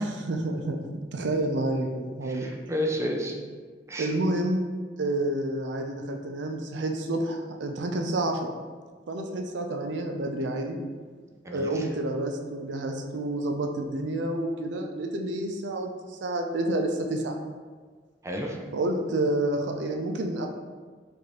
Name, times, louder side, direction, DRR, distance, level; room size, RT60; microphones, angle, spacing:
voice 1, 0.0-2.5 4.0-4.7 5.0-8.5 9.1-10.8 11.5-17.4 18.7-20.5, right 1 dB, 75° right, 3 dB, 0.4 m, -29 dB
voice 2, 2.2-3.4 3.9-4.1 11.4-11.9 18.2-18.6, equal, 15° right, 1 dB, 0.4 m, -31 dB
4.7 x 2.6 x 2.9 m, 1.5 s
head